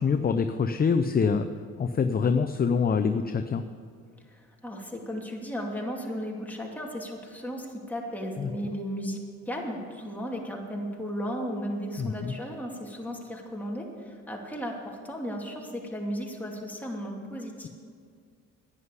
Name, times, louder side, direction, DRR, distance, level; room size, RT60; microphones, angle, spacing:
voice 1, 0.0-1.5 1.8-3.6 8.4-8.5 12.0-12.3, left 5 dB, 30° left, 8 dB, 0.6 m, -25 dB
voice 2, 4.3-9.2 9.5-17.7, equal, 5° left, -1 dB, 2.5 m, -35 dB
11.0 x 9.7 x 8.1 m, 2.2 s
cardioid pair, 90°, 30 cm